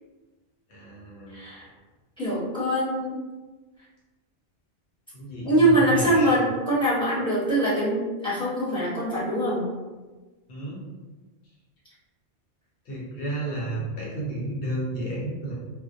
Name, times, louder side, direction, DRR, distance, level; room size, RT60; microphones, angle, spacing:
voice 1, 0.7-1.4 5.1-6.4 10.5-10.8 12.9-15.5, right 1 dB, 60° left, -5 dB, 1.0 m, -32 dB
voice 2, 1.3-1.6 2.2-3.2 5.4-9.7, right 1 dB, 5° left, -9 dB, 0.9 m, -23 dB
2.3 x 2.1 x 2.6 m, 1.2 s
omnidirectional pair, 1.2 m